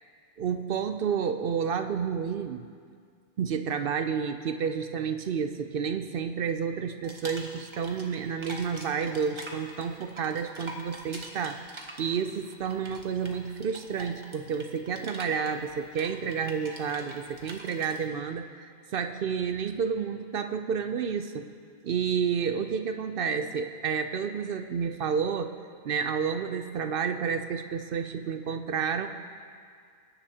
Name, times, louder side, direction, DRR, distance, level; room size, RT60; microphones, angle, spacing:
voice 1, 0.4-2.6 3.4-11.6 12.0-21.5 21.8-25.5 25.8-29.1, right 6 dB, 60° right, 8 dB, 0.7 m, -30 dB
sound 1, 7.0-8.2 8.4-18.0, right 1 dB, 25° right, 1.1 m, -44 dB
20.5 x 10.0 x 2.8 m, 2.1 s
omnidirectional pair, 1.2 m